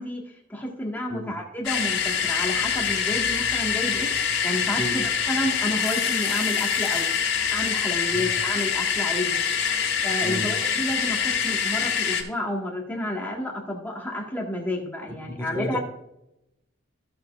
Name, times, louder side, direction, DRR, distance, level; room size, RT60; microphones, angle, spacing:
voice 1, 0.0-4.1 4.4-7.1 7.5-9.4 10.0-15.8, left 1 dB, 10° left, -2 dB, 1.7 m, -31 dB
sound 1, 1.6-12.2, left 7 dB, 60° left, 2.8 m, -25 dB
voice 2, 15.4-15.8, equal, 10° right, 0 dB, 1.6 m, -32 dB
15.0 x 6.9 x 2.5 m, 0.85 s
head